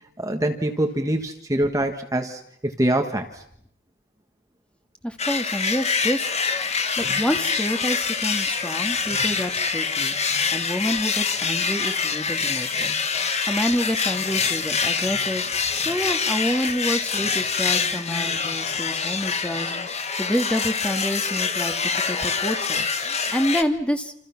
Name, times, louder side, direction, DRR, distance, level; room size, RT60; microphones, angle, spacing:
voice 1, 0.2-3.4, right 1 dB, 15° right, 4 dB, 1.5 m, -24 dB
voice 2, 5.0-12.9 13.5-15.5 15.7-21.7 22.1-24.1, equal, 5° left, 6 dB, 1.9 m, -28 dB
sound 1, 5.2-23.6, left 5 dB, 30° left, 1.4 m, -25 dB
28.5 x 28.0 x 5.9 m, 0.69 s
head